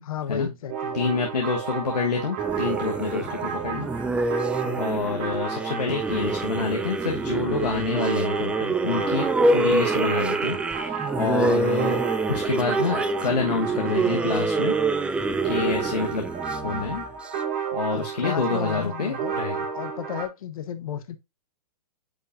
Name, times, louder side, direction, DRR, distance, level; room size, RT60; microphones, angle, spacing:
voice 1, 0.0-1.2 3.0-3.3 4.6-4.8 17.9-19.3 19.7-21.2, left 9 dB, 60° left, 1.1 m, -34 dB
sound 1, 0.7-20.3, right 6 dB, 35° right, 2.2 m, -32 dB
voice 2, 0.9-3.9 4.8-9.3 9.5-12.0 12.3-14.7 15.0-15.2 15.4-16.3 16.6-17.0 17.7-19.6, left 4 dB, 90° left, 1.5 m, -27 dB
sound 2, 2.4-17.3, right 3 dB, 5° right, 0.4 m, -26 dB
8.9 x 5.2 x 2.7 m
hypercardioid pair, 125°, 20 cm